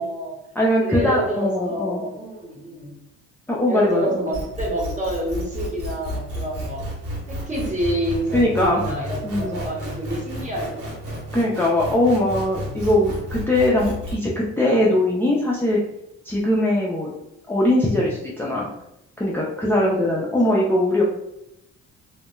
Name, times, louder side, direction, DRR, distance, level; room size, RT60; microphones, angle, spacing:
voice 1, 0.0-0.4 0.8-2.9 3.7-6.9 7.3-11.2 19.7-20.1 20.5-20.7, right 1 dB, 25° right, -2 dB, 1.0 m, -28 dB
voice 2, 0.6-2.0 3.5-4.3 8.3-8.8 9.2-9.6 11.3-15.8 16.2-17.1 17.5-18.7 19.2-21.0, left 1 dB, 5° left, -5 dB, 0.4 m, -21 dB
sound 1, 4.3-14.1, equal, 90° right, 1.0 m, -31 dB
2.2 x 2.0 x 3.0 m, 0.83 s
cardioid pair, 90°, 30 cm